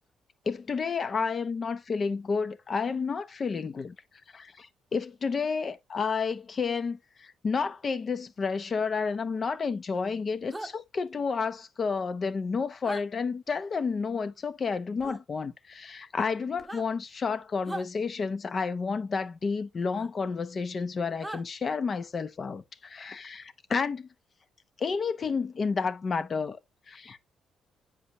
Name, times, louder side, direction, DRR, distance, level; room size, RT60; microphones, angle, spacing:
voice 1, 0.5-4.0 4.3-24.1 24.8-26.6 26.9-27.2, left 5 dB, 40° left, 0.8 m, -31 dB
sound 1, 10.5-10.7 12.8-13.0 15.0-15.2 16.5-16.9 17.6-17.9 19.9-20.1 21.2-21.4, right 1 dB, ahead, 1.1 m, -38 dB
8.3 x 5.0 x 2.8 m
cardioid pair, 90°, 0 cm